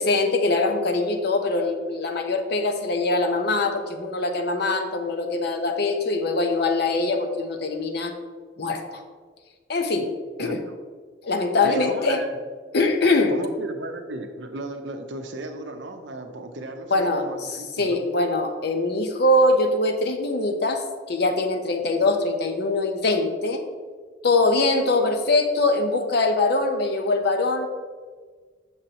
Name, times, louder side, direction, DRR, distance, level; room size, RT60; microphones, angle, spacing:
voice 1, 0.0-8.1 8.6-9.0 9.7-10.1 10.4-10.6 11.2-12.2 12.7-13.3 16.9-20.8 21.1-23.6 24.2-27.7, left 2 dB, 65° left, 6 dB, 0.7 m, -23 dB
voice 2, 10.4-10.8 11.6-12.4 13.3-18.0, right 2 dB, 80° right, 5 dB, 0.7 m, -35 dB
6.5 x 6.4 x 2.9 m, 1.5 s
head